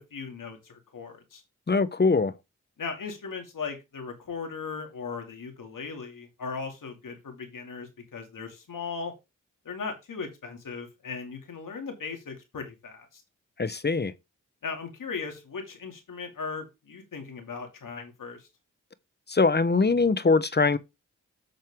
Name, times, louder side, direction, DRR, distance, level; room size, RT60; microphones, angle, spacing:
voice 1, 0.1-1.4 2.8-9.1 9.6-13.2 14.6-18.5, left 5 dB, 75° left, 2.6 m, -38 dB
voice 2, 1.7-2.3 13.6-14.1 19.3-20.8, left 4 dB, 30° left, 1.0 m, -22 dB
7.8 x 6.5 x 3.7 m
cardioid pair, 40°, 33 cm